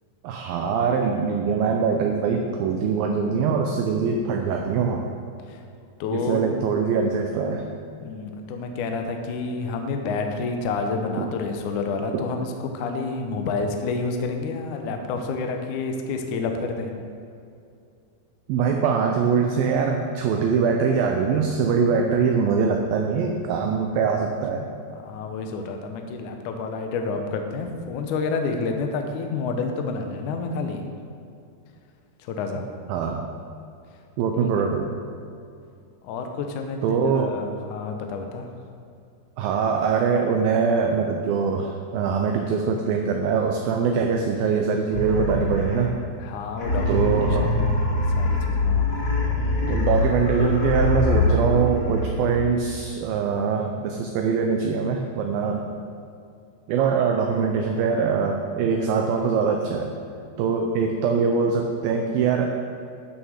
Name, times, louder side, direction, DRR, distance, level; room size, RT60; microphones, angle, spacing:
voice 1, 0.2-5.1 6.1-7.7 11.2-11.3 12.1-12.3 18.5-24.7 32.9-33.2 34.2-34.9 36.8-37.3 39.4-45.9 46.9-47.5 49.7-55.6 56.7-59.9 60.4-62.6, right 5 dB, 80° right, 3 dB, 2.2 m, -23 dB
voice 2, 6.0-6.4 8.0-12.5 12.7-16.9 24.9-30.9 32.2-32.7 34.4-34.5 36.0-38.5 46.2-48.9, left 4 dB, 75° left, 4 dB, 1.8 m, -29 dB
sound 1, 44.9-46.1 46.6-52.5, left 2 dB, 35° left, 3.0 m, -23 dB
11.5 x 6.4 x 6.4 m, 2.5 s
omnidirectional pair, 4.8 m